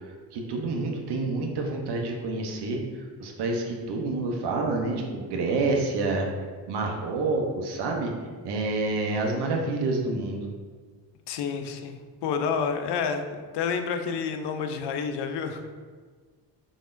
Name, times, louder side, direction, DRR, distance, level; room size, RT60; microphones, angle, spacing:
voice 1, 0.3-2.8 3.2-8.1 8.4-10.5, right 3 dB, 55° right, 1 dB, 0.8 m, -28 dB
voice 2, 11.3-13.2 13.5-15.7, left 6 dB, 55° left, 6 dB, 0.6 m, -29 dB
3.7 x 3.4 x 2.5 m, 1.5 s
hypercardioid pair, 50°, 49 cm